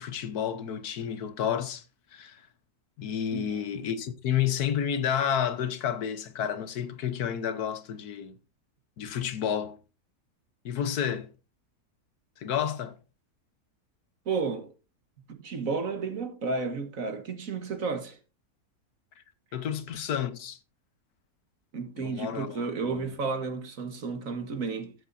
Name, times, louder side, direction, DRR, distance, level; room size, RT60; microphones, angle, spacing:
voice 1, 0.0-1.8 2.1-2.4 3.0-8.4 9.0-9.8 10.6-11.3 12.4-13.0 19.5-20.6 22.0-23.1, left 9 dB, 75° left, 1.5 m, -30 dB
voice 2, 3.3-3.6 14.3-14.7 15.3-18.2 21.7-24.9, right 4 dB, 60° right, 1.9 m, -32 dB
15.0 x 7.4 x 2.7 m
omnidirectional pair, 1.7 m